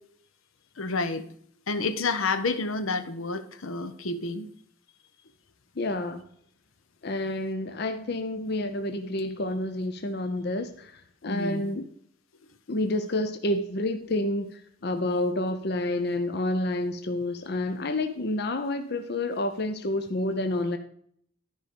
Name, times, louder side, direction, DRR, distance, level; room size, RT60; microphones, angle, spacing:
voice 1, 0.8-1.3 1.7-4.5 11.3-11.7, left 3 dB, 75° left, 0.9 m, -29 dB
voice 2, 5.8-6.2 7.0-11.9 12.7-20.8, left 1 dB, 50° left, 0.6 m, -29 dB
13.0 x 5.0 x 5.2 m
head